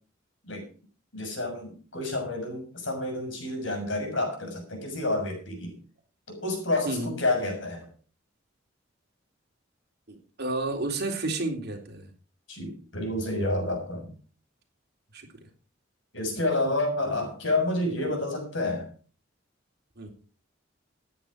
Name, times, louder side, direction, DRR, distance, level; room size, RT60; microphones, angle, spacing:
voice 1, 1.1-5.7 6.3-7.9 12.5-14.1 16.1-18.9, left 2 dB, 75° left, 3 dB, 6.7 m, -29 dB
voice 2, 10.1-12.1 15.1-15.5 20.0-20.1, right 2 dB, 55° right, 2 dB, 3.7 m, -31 dB
14.5 x 10.0 x 4.8 m, 0.39 s
head